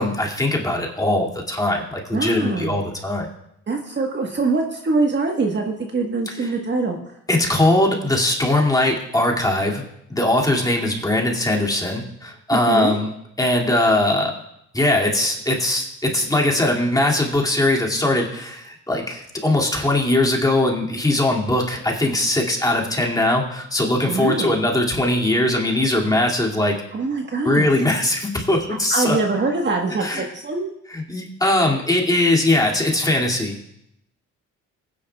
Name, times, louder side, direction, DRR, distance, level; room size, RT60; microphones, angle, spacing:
voice 1, 0.0-3.3 7.3-9.8 10.1-13.1 13.4-14.3 14.7-26.8 27.4-29.2 30.0-30.3 30.9-33.7, left 1 dB, 10° left, -2 dB, 2.3 m, -20 dB
voice 2, 2.1-2.7 3.7-7.0 12.5-12.9 24.1-24.5 26.9-27.7 28.9-30.7, right 3 dB, 35° right, 2 dB, 1.4 m, -23 dB
19.5 x 9.9 x 2.3 m, 0.78 s
cardioid pair, 90°, 30 cm